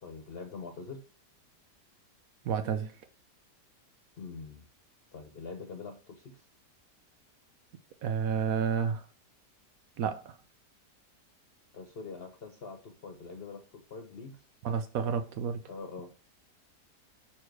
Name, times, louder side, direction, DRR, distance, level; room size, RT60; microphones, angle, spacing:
voice 1, 0.0-1.0 4.2-4.7 5.1-6.4 11.7-14.4 15.7-16.1, left 4 dB, 60° left, 0.6 m, -44 dB
voice 2, 2.5-2.9 8.0-9.0 10.0-10.4 14.6-15.6, right 7 dB, 70° right, 0.9 m, -30 dB
6.4 x 4.3 x 4.5 m
omnidirectional pair, 1.8 m